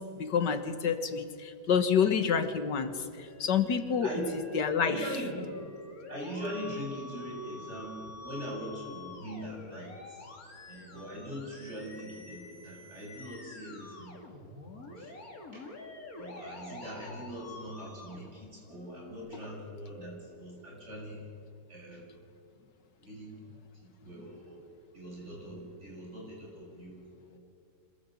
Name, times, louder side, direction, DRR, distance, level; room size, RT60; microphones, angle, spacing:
voice 1, 0.0-4.1 4.5-5.1 24.2-24.3, left 7 dB, 75° left, 9 dB, 2.0 m, -28 dB
Musical instrument, 3.2-19.1, left 2 dB, 55° left, 3.3 m, -48 dB
voice 2, 4.8-5.7 6.1-10.3 10.7-14.1 14.9-15.1 15.5-15.7 16.2-21.3 21.7-22.0 23.0-23.4 24.0-24.6 24.9-27.4, equal, 40° right, -2 dB, 8.3 m, -41 dB
26.0 x 20.5 x 8.3 m, 2.4 s
omnidirectional pair, 1.9 m